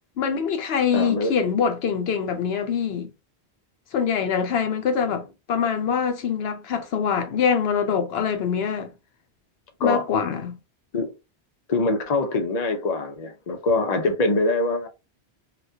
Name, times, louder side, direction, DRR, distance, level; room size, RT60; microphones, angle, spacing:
voice 1, 0.2-3.1 3.9-8.9 9.8-10.6, left 7 dB, 70° left, 0.8 m, -24 dB
voice 2, 0.9-1.3 5.1-5.2 9.8-10.1 10.9-11.1 11.7-14.9, left 2 dB, 45° left, 0.7 m, -24 dB
4.1 x 2.2 x 2.6 m
omnidirectional pair, 1.1 m